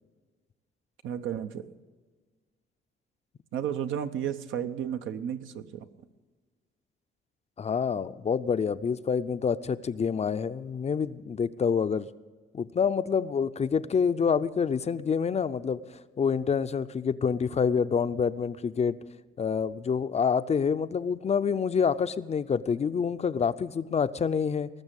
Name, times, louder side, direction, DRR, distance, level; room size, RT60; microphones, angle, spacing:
voice 1, 1.0-1.7 3.5-5.9, right 9 dB, 80° right, 9 dB, 0.8 m, -33 dB
voice 2, 7.6-12.1 12.5-19.0 19.4-24.7, left 6 dB, 35° left, 13 dB, 0.5 m, -27 dB
19.5 x 6.7 x 8.1 m, 1.4 s
cardioid pair, 90°, 20 cm